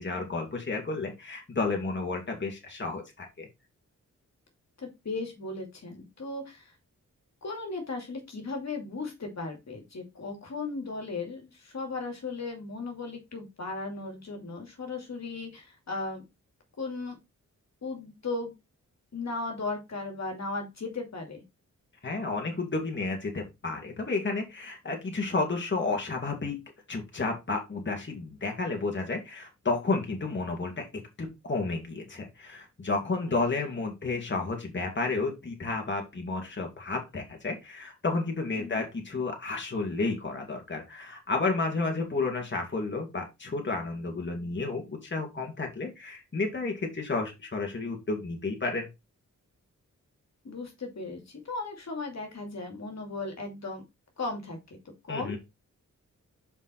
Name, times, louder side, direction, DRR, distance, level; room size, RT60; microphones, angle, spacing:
voice 1, 0.0-3.5 22.0-26.6 26.9-30.9 31.2-48.9 55.1-55.4, left 3 dB, 35° left, 1 dB, 2.3 m, -31 dB
voice 2, 4.8-6.7 7.4-16.2 16.8-17.2 17.8-18.5 19.1-21.4 33.2-33.3 38.6-38.8 50.4-53.8 54.2-54.8 55.0-55.4, left 3 dB, 60° left, 3 dB, 2.5 m, -36 dB
5.9 x 5.4 x 4.3 m, 0.23 s
cardioid pair, 75°, 31 cm